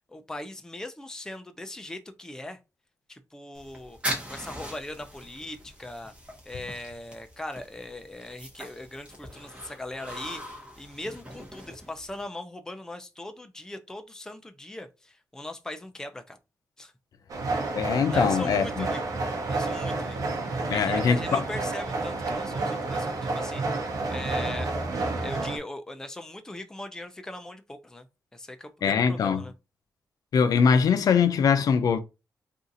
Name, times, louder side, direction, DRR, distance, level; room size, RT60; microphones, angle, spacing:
voice 1, 0.1-2.6 3.1-4.0 4.3-6.1 6.5-16.4 16.8-16.9 18.1-19.0 19.5-20.2 20.5-23.6 24.1-24.7 25.0-28.1 28.3-29.5, left 1 dB, 10° left, 0.4 m, -40 dB
sound 1, 3.5-12.2, equal, 15° right, 0.9 m, -40 dB
sound 2, 17.3-25.6, right 3 dB, 65° right, 0.8 m, -30 dB
voice 2, 17.7-18.9 20.7-21.4 28.8-29.4 30.3-32.0, left 6 dB, 75° left, 0.4 m, -22 dB
2.6 x 2.4 x 3.8 m
wide cardioid pair, 135°, 6 cm